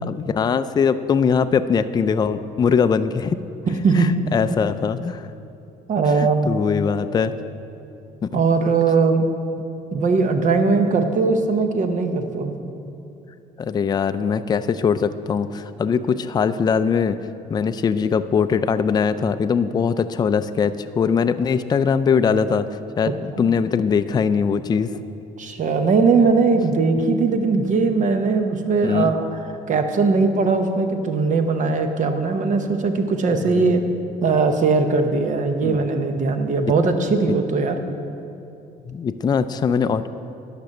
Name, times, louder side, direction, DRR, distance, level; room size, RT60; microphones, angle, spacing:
voice 1, 0.0-3.4 3.9-5.3 6.2-7.3 8.2-8.4 13.6-17.2 17.5-22.7 23.0-24.9 28.8-29.1 33.3-33.8 35.6-35.8 38.9-40.1, left 6 dB, 25° left, 11 dB, 0.4 m, -21 dB
voice 2, 3.7-4.3 5.9-6.5 8.3-9.2 9.9-12.5 23.3-23.5 25.4-29.3 29.7-33.8 34.2-37.8, right 4 dB, 50° right, 7 dB, 1.0 m, -20 dB
10.5 x 6.1 x 6.5 m, 2.7 s
cardioid pair, 110°, 17 cm